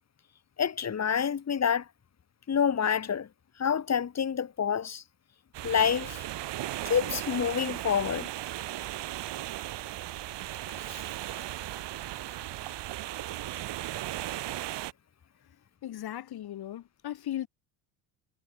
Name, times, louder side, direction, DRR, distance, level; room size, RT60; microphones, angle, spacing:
voice 1, 0.6-1.8 2.5-3.3 3.6-5.0 5.6-6.2 6.8-8.3 10.9-11.0, left 7 dB, 35° left, 3.2 m, -27 dB
sound 1, 5.5-14.9, right 14 dB, 60° right, 4.9 m, -36 dB
voice 2, 15.8-17.5, left 12 dB, 50° left, 3.3 m, -37 dB
supercardioid pair, 80°, 47 cm